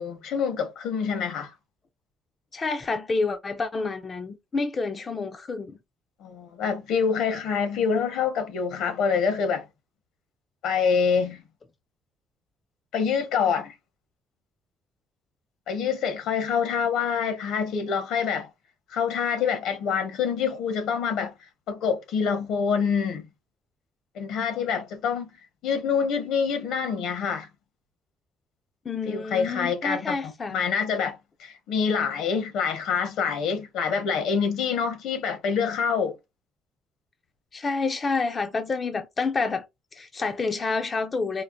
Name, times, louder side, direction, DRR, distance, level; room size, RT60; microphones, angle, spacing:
voice 1, 0.0-1.5 6.2-9.7 10.6-11.4 12.9-13.7 15.7-18.5 18.9-21.3 21.7-23.3 24.1-25.3 25.6-27.5 29.0-30.1 30.5-36.2, left 6 dB, 70° left, 1.1 m, -26 dB
voice 2, 2.5-5.7 28.9-30.6 37.5-39.7 39.9-41.4, left 4 dB, 25° left, 0.4 m, -28 dB
4.3 x 2.4 x 2.4 m
cardioid pair, 175°, 0 cm